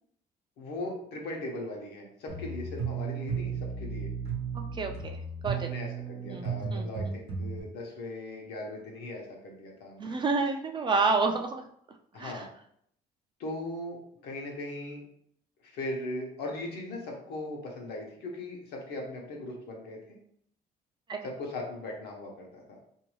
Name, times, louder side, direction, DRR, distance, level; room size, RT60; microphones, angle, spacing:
voice 1, 0.6-4.1 5.5-10.2 12.1-12.5 13.4-15.0 15.6-20.2 21.2-22.6, left 2 dB, 75° left, 0 dB, 0.9 m, -39 dB
sound 1, 2.3-7.6, right 5 dB, 85° right, 0.8 m, -34 dB
voice 2, 4.5-5.7 6.3-7.1 10.0-11.6 12.1-12.5 21.1-21.2, right 4 dB, 30° right, 4 dB, 0.3 m, -30 dB
2.6 x 2.3 x 3.1 m, 0.68 s
cardioid pair, 110°, 17 cm